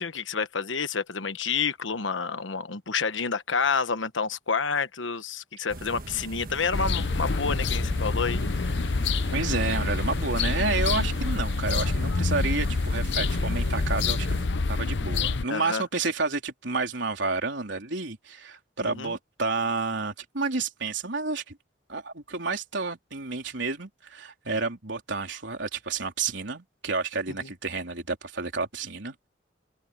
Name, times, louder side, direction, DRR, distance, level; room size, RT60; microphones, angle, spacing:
voice 1, 0.0-8.8 15.5-15.8 18.8-19.1 27.4-27.5, left 5 dB, 85° left, 1.2 m, -29 dB
sound 1, 5.7-14.5, right 1 dB, 50° right, 1.4 m, -40 dB
sound 2, 6.7-15.4, left 3 dB, 70° left, 0.8 m, -27 dB
voice 2, 9.3-14.3 14.7-21.6 21.9-29.3, right 3 dB, 75° right, 3.6 m, -30 dB
open air
head